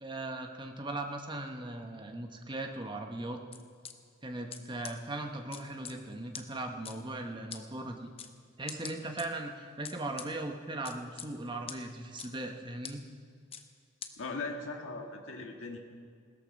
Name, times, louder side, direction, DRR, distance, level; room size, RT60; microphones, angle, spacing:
voice 1, 0.0-3.4 4.2-8.1 8.6-13.0, right 2 dB, 25° right, 4 dB, 1.1 m, -39 dB
sound 1, 3.5-3.9 4.5-4.6 4.8-4.9 5.5-5.9 6.3-6.4 6.8-6.9 7.5-7.6 8.2-8.3 8.7-9.2 9.8-10.3 10.8-11.3 11.7-11.8 12.2-12.3 12.8-12.9 13.5-13.6 14.0-14.1, left 8 dB, 30° left, 0.8 m, -42 dB
voice 2, 14.2-15.8, left 3 dB, 75° left, 1 dB, 1.7 m, -39 dB
17.5 x 13.5 x 5.3 m, 2.1 s
head